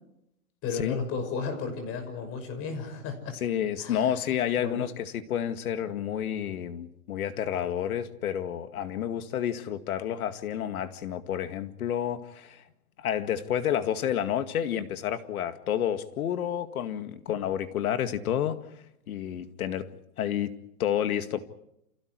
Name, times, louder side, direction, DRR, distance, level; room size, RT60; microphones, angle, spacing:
voice 1, 0.6-3.4 3.8-4.2 4.6-4.9, left 5 dB, 30° left, 5.9 m, -34 dB
voice 2, 3.4-12.6 13.0-18.6 19.1-19.9 20.2-20.5 20.8-21.4, left 10 dB, 65° left, 2.2 m, -30 dB
30.0 x 27.5 x 4.7 m
hypercardioid pair, 155°, 46 cm